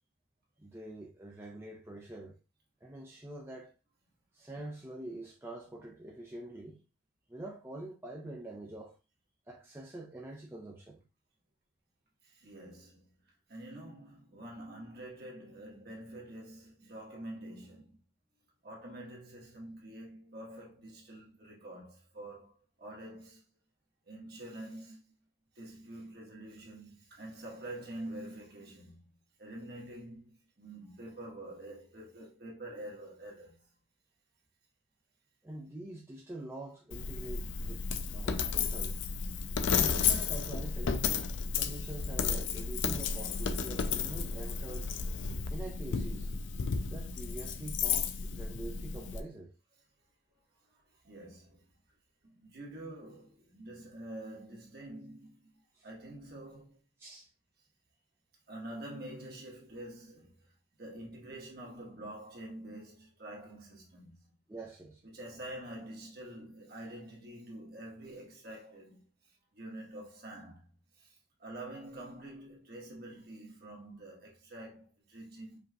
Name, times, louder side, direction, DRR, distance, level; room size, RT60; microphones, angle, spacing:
voice 1, 0.6-2.4 2.8-3.7 4.3-6.8 7.3-8.9 9.5-11.0 35.4-39.0 39.7-41.1 41.5-44.9 45.5-46.3 46.8-49.5 55.7-55.8 57.0-57.3 64.5-65.0, right 2 dB, 10° right, 0.6 m, -45 dB
voice 2, 12.2-13.1 13.5-18.0 18.6-22.5 22.8-23.4 24.1-25.0 25.5-29.1 29.4-33.6 51.0-51.6 52.2-56.8 58.5-60.5 60.8-64.2 65.0-69.0 69.5-70.7 71.0-75.6, right 1 dB, 50° right, 1.4 m, -47 dB
Coin (dropping), 36.9-49.2, left 6 dB, 65° left, 0.4 m, -33 dB
5.2 x 3.0 x 2.4 m
head